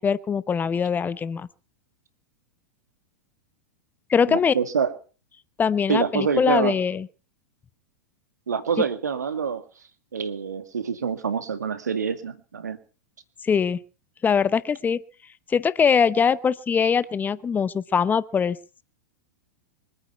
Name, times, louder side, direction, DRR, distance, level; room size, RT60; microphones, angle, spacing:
voice 1, 0.0-1.5 4.1-4.5 5.6-7.1 13.4-13.8 14.2-15.0 15.5-18.6, left 6 dB, 20° left, 17 dB, 0.8 m, -22 dB
voice 2, 4.3-4.9 5.9-6.8 8.5-9.6 10.1-12.8, right 6 dB, 80° right, 10 dB, 2.0 m, -26 dB
24.5 x 9.0 x 5.8 m, 0.38 s
hypercardioid pair, 95°, 9 cm